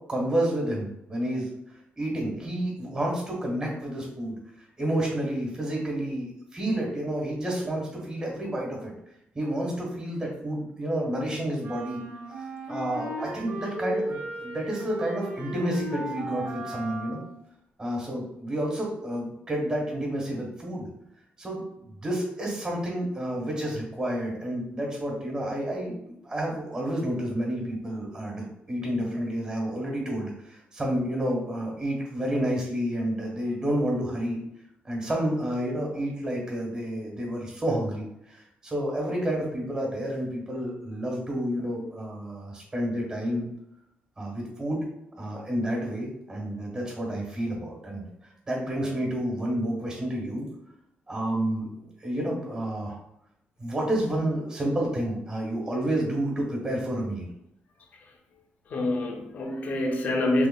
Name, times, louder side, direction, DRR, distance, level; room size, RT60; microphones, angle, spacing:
voice 1, 0.1-1.5 2.0-4.4 4.8-8.9 9.3-12.0 12.3-17.2 17.8-20.9 21.4-26.0 26.2-34.4 34.8-43.5 44.2-44.9 45.2-48.0 48.5-50.5 51.1-53.0 53.6-57.3, right 1 dB, 20° right, -2 dB, 1.5 m, -30 dB
sound 1, 11.6-17.4, right 1 dB, 90° right, 1.0 m, -35 dB
voice 2, 58.7-60.5, left 1 dB, 45° left, 1 dB, 0.5 m, -27 dB
3.6 x 3.6 x 2.2 m, 0.78 s
wide cardioid pair, 160°, 4 cm